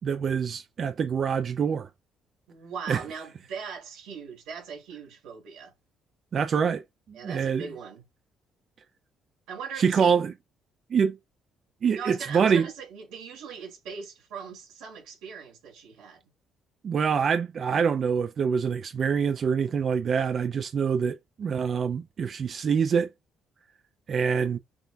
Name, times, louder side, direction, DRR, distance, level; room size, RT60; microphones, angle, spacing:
voice 1, 0.0-1.9 2.9-3.0 6.3-6.8 7.1-7.7 9.8-10.3 10.9-11.2 11.8-12.7 16.8-23.1 24.1-24.6, right 6 dB, 45° right, 0.3 m, -25 dB
voice 2, 2.5-5.7 7.1-8.0 9.5-10.1 12.0-16.2, right 6 dB, 90° right, 3.1 m, -40 dB
5.8 x 2.2 x 2.6 m
cardioid pair, 105°, 0 cm